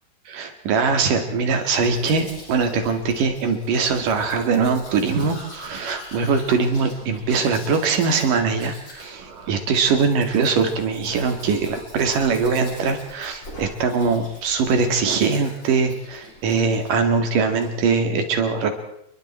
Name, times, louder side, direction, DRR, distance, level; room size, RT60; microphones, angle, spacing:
voice 1, 0.3-18.8, right 5 dB, 55° right, 6 dB, 3.3 m, -22 dB
Domestic sounds home sounds, 1.5-17.0 17.3-17.7, left 1 dB, 25° left, 7.4 m, -43 dB
29.5 x 23.0 x 4.4 m, 0.77 s
omnidirectional pair, 5.0 m